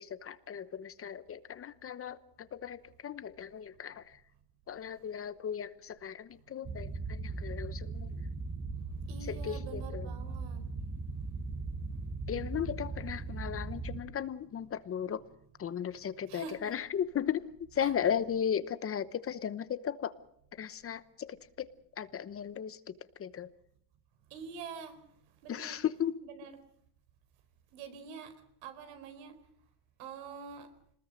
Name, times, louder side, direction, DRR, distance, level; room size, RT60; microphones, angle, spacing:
voice 1, 0.0-4.2 4.7-8.1 9.3-10.1 12.3-15.2 15.6-17.5 17.7-20.1 20.6-21.7 22.0-22.8 23.2-23.5 25.5-26.2, left 8 dB, 30° left, 15 dB, 1.0 m, -36 dB
sound 1, 6.6-14.0, right 3 dB, 25° right, 1.8 m, -38 dB
voice 2, 9.1-10.7 16.3-16.7 17.8-17.9 24.3-25.0 25.4-25.8 26.2-26.5 27.7-28.3 28.6-29.4 30.0-30.7, right 6 dB, 85° right, 9 dB, 4.5 m, -46 dB
26.0 x 20.5 x 6.5 m, 0.69 s
cardioid pair, 135°, 46 cm